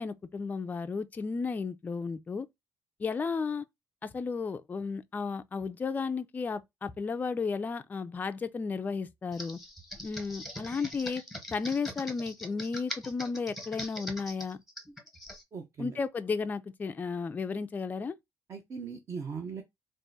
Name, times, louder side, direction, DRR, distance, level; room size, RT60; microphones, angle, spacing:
voice 1, 0.0-2.5 3.0-3.6 4.0-9.6 10.0-11.2 11.5-14.6 15.8-18.1, left 5 dB, 20° left, 0.3 m, -33 dB
Computer keyboard, 9.3-15.4, left 1 dB, ahead, 0.8 m, -42 dB
voice 2, 15.5-16.0 18.5-19.6, right 5 dB, 40° right, 0.6 m, -39 dB
3.6 x 2.5 x 3.9 m
cardioid pair, 140°, 8 cm